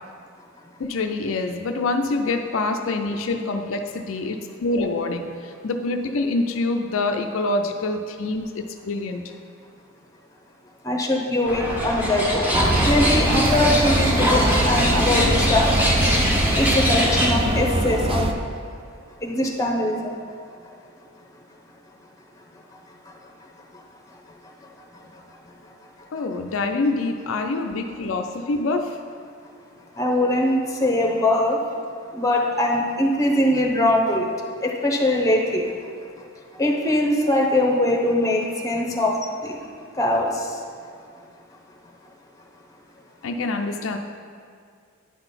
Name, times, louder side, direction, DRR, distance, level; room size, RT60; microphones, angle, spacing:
voice 1, 0.8-9.3 26.1-29.0 43.2-44.0, left 2 dB, 70° left, 5 dB, 0.4 m, -26 dB
voice 2, 10.8-12.5 12.8-15.7 16.6-18.3 19.2-20.1 30.0-31.6 32.2-34.3 34.6-35.6 36.6-39.1 39.4-39.5 40.0-40.3, left 1 dB, 15° left, 0 dB, 0.8 m, -21 dB
sound 1, 11.5-17.3, equal, 10° right, 1.0 m, -23 dB
sound 2, 12.5-18.3, right 1 dB, 25° right, 0.4 m, -23 dB
9.7 x 3.9 x 5.6 m, 2.2 s
head